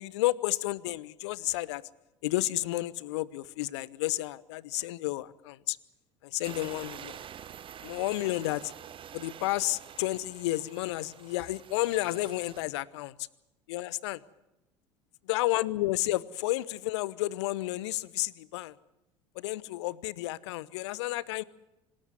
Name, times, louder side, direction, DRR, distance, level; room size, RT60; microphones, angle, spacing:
voice 1, 0.0-1.8 2.2-5.8 6.2-7.2 7.8-8.7 9.1-13.2 13.7-14.2 15.3-18.7 19.4-21.4, left 17 dB, 65° left, 22 dB, 0.8 m, -31 dB
sound 1, 6.4-12.6, right 9 dB, 35° right, 0.8 m, -47 dB
26.0 x 13.0 x 9.6 m, 0.95 s
figure-of-eight pair, 65°, 16 cm